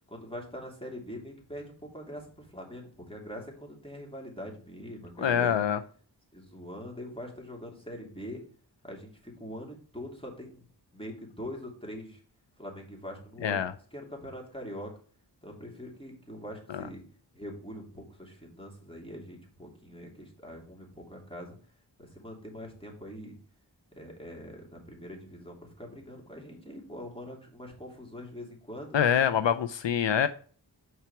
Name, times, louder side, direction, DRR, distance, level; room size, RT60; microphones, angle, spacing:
voice 1, 0.1-5.6 6.3-8.4 8.8-10.7 10.9-12.2 12.6-13.6 13.9-14.9 15.4-17.0 17.3-21.6 22.0-23.3 23.9-29.0, equal, 10° left, 0 dB, 2.8 m, -43 dB
voice 2, 5.2-5.8 13.4-13.7 16.7-16.8 28.9-30.3, left 8 dB, 80° left, 11 dB, 0.6 m, -25 dB
6.0 x 4.7 x 5.8 m, 0.43 s
wide cardioid pair, 50°, 44 cm